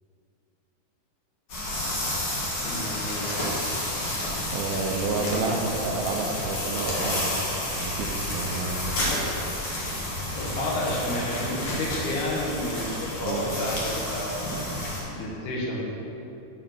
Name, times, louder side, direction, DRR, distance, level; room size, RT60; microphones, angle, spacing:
sound 1, 1.5-15.0, left 1 dB, 60° left, 1.5 m, -30 dB
voice 1, 2.6-3.3 10.4-14.4 15.0-15.9, left 1 dB, 75° left, -3 dB, 3.1 m, -31 dB
voice 2, 4.5-7.3 7.7-9.2 13.2-13.5, right 3 dB, 80° right, 0 dB, 2.4 m, -30 dB
6.8 x 5.6 x 5.8 m, 2.9 s
omnidirectional pair, 4.7 m